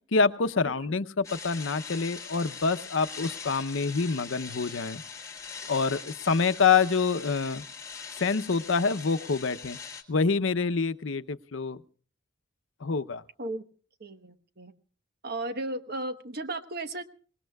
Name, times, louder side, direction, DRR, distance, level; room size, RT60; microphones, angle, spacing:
voice 1, 0.1-5.0 5.7-7.6 8.2-9.8 10.1-11.8 12.8-13.2, left 4 dB, 80° left, 12 dB, 0.7 m, -26 dB
sound 1, 1.2-10.0, left 5 dB, 15° left, 1.7 m, -42 dB
voice 2, 14.0-14.7 15.2-17.0, right 2 dB, 55° right, 10 dB, 1.1 m, -35 dB
25.0 x 20.0 x 2.3 m, 0.42 s
head